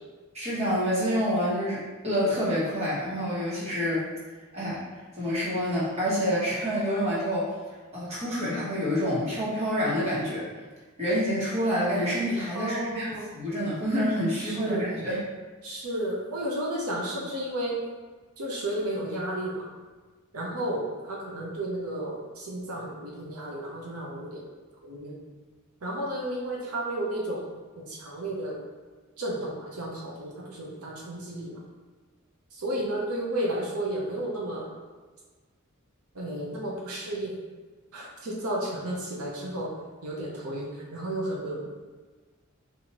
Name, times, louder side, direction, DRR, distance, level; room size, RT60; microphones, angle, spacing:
voice 1, 0.3-4.0 4.5-4.8 5.2-7.5 7.9-10.4 11.0-13.1 13.3-15.2, equal, 30° right, -9 dB, 1.3 m, -27 dB
voice 2, 12.5-13.3 14.4-14.9 15.6-17.8 18.4-19.6 20.3-24.4 24.8-25.2 25.8-27.5 27.8-28.6 29.2-31.6 32.5-34.7 36.1-37.3 37.9-39.7 40.0-41.6, right 1 dB, 90° right, -3 dB, 0.7 m, -32 dB
4.3 x 2.6 x 3.0 m, 1.3 s
head